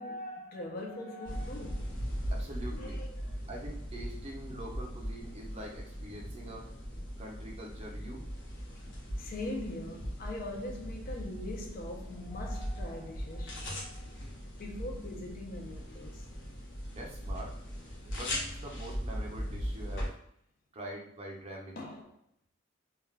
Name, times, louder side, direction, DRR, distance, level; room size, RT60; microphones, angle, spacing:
voice 1, 0.0-2.0 2.7-3.3 6.1-6.2 9.2-14.1 14.6-16.3 21.8-22.2, left 1 dB, 45° left, 0.5 m, -42 dB
sound 1, 1.2-20.1, equal, 65° left, 0.9 m, -39 dB
voice 2, 2.3-3.0 3.5-6.7 7.2-8.2 16.9-17.6 18.0-20.1 20.7-21.8, right 1 dB, 30° right, 0.5 m, -44 dB
2.3 x 2.2 x 3.2 m
head